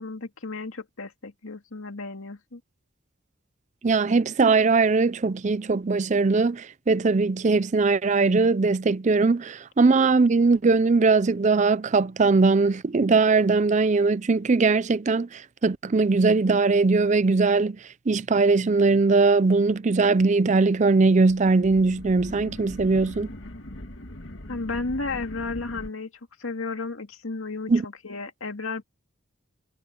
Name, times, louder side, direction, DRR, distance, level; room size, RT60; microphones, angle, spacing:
voice 1, 0.0-2.6 24.5-26.1 26.4-28.8, left 3 dB, 85° left, 2.2 m, -33 dB
voice 2, 3.8-17.8 18.1-23.3 27.7-27.8, right 3 dB, 35° right, 0.4 m, -20 dB
sound 1, 21.3-25.9, left 1 dB, 65° left, 2.1 m, -41 dB
head